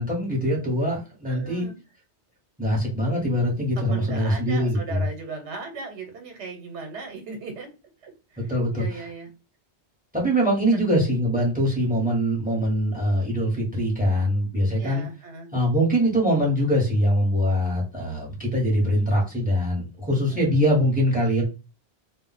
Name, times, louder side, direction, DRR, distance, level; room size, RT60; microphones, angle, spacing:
voice 1, 0.0-1.7 2.6-5.0 8.4-9.0 10.1-15.0 15.5-21.4, equal, 10° right, -1 dB, 0.8 m, -23 dB
voice 2, 1.3-1.8 3.8-7.7 8.0-9.3 10.7-10.8 14.8-15.5 20.3-20.5, right 4 dB, 80° right, 4 dB, 1.0 m, -38 dB
2.3 x 2.0 x 3.8 m, 0.31 s
omnidirectional pair, 1.2 m